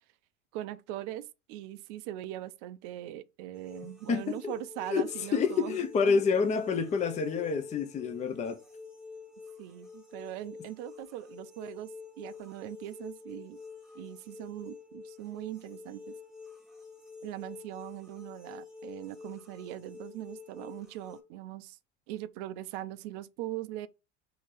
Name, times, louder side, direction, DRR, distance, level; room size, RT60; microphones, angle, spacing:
voice 1, 0.5-6.2 9.6-13.6 13.9-16.1 17.2-21.8 22.1-23.9, right 13 dB, 50° right, 0.4 m, -41 dB
sound 1, 3.5-21.2, left 4 dB, ahead, 1.2 m, -48 dB
voice 2, 4.1-4.5 4.9-8.6, left 5 dB, 20° left, 0.5 m, -28 dB
2.9 x 2.7 x 4.4 m
figure-of-eight pair, 70°, 35 cm